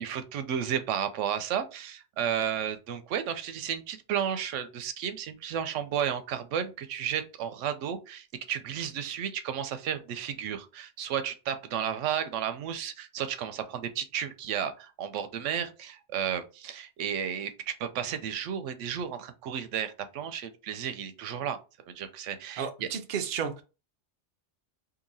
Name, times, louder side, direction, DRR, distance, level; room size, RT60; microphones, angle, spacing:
voice 1, 0.0-21.6 21.9-22.9, right 8 dB, 85° right, 0.9 m, -33 dB
voice 2, 22.6-23.6, right 7 dB, 55° right, 0.7 m, -32 dB
2.8 x 2.7 x 3.9 m
omnidirectional pair, 1.2 m